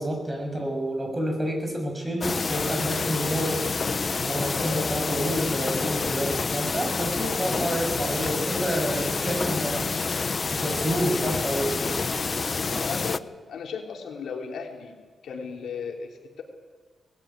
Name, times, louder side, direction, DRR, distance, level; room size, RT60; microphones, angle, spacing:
voice 1, 0.0-3.6 4.2-9.9 10.5-11.9, right 1 dB, 20° right, 2 dB, 6.5 m, -29 dB
sound 1, 2.2-13.2, left 4 dB, 40° left, 0.6 m, -28 dB
voice 2, 4.6-5.3 7.2-7.4 12.6-15.0 15.2-16.4, left 5 dB, 80° left, 1 dB, 3.3 m, -36 dB
20.0 x 14.5 x 9.3 m, 1.4 s
cardioid pair, 100°, 0 cm